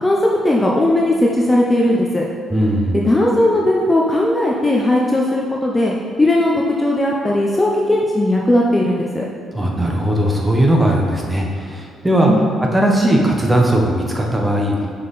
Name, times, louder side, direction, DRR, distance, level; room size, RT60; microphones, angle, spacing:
voice 1, 0.4-2.2 2.9-9.3 12.3-12.5, left 1 dB, 15° left, -2 dB, 0.6 m, -17 dB
voice 2, 2.5-3.0 9.5-12.3 12.7-14.9, right 1 dB, 10° right, 0 dB, 1.0 m, -17 dB
5.6 x 5.6 x 4.1 m, 2.1 s
cardioid pair, 120°, 0 cm